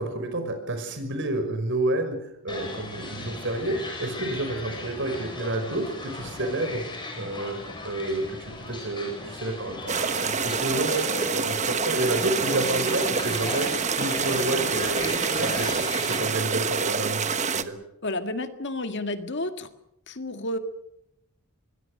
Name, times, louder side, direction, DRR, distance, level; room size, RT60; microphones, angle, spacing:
voice 1, 0.0-6.8 7.2-7.6 7.8-8.4 8.7-13.7 14.0-15.1 15.4-17.7, right 2 dB, 55° right, 7 dB, 5.7 m, -29 dB
sound 1, 2.5-16.3, left 2 dB, 20° left, 7.0 m, -36 dB
sound 2, 9.9-17.6, right 5 dB, 30° right, 1.2 m, -27 dB
voice 2, 18.0-19.7 20.1-20.6, left 2 dB, 55° left, 8 dB, 1.9 m, -31 dB
25.0 x 21.5 x 6.6 m, 0.78 s
head